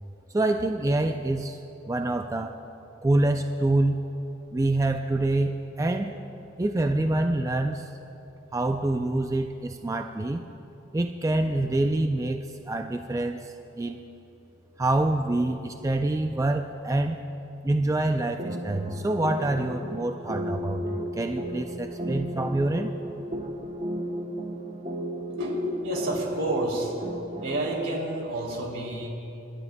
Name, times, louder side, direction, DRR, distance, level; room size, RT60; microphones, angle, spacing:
voice 1, 0.3-1.6 1.9-2.6 3.0-4.0 4.5-6.2 6.6-7.9 8.5-10.4 10.9-14.0 14.8-17.2 17.6-22.9, right 2 dB, 15° right, 6 dB, 0.3 m, -26 dB
sound 1, 18.4-27.7, right 1 dB, 30° right, 0.8 m, -34 dB
voice 2, 25.4-27.1 27.4-29.1, right 1 dB, 85° right, -2 dB, 2.9 m, -29 dB
29.0 x 12.0 x 2.2 m, 2.8 s
head